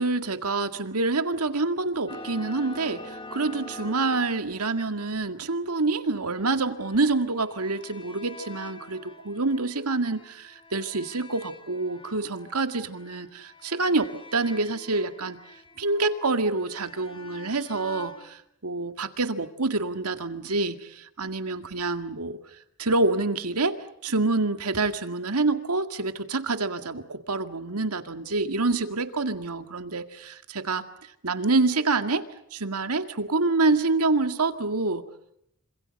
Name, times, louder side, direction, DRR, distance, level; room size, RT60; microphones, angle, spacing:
voice 1, 0.0-15.4 15.8-22.4 22.8-30.8 31.2-35.0, right 3 dB, 80° right, 8 dB, 2.1 m, -27 dB
sound 1, 2.1-5.3 6.2-18.3, left 2 dB, 25° left, 2.3 m, -46 dB
27.0 x 27.0 x 6.6 m, 0.74 s
head